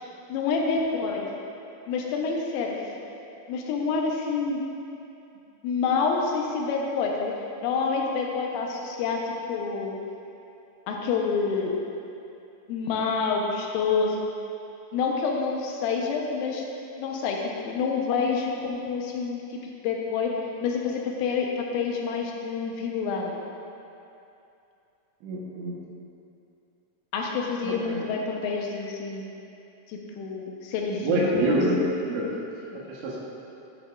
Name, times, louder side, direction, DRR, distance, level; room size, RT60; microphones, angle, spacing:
voice 1, 0.3-1.3 1.9-2.8 3.5-4.6 5.6-7.3 7.6-9.9 10.9-11.7 12.7-14.2 14.9-16.6 17.0-17.4 17.7-20.3 20.6-23.4 27.1-29.3 29.9-31.6, left 5 dB, 85° left, 0 dB, 3.4 m, -27 dB
voice 2, 25.2-25.8 27.6-28.1 31.0-32.3 32.7-33.2, right 1 dB, 75° right, -4 dB, 3.2 m, -26 dB
10.5 x 10.0 x 2.4 m, 2.8 s
omnidirectional pair, 5.7 m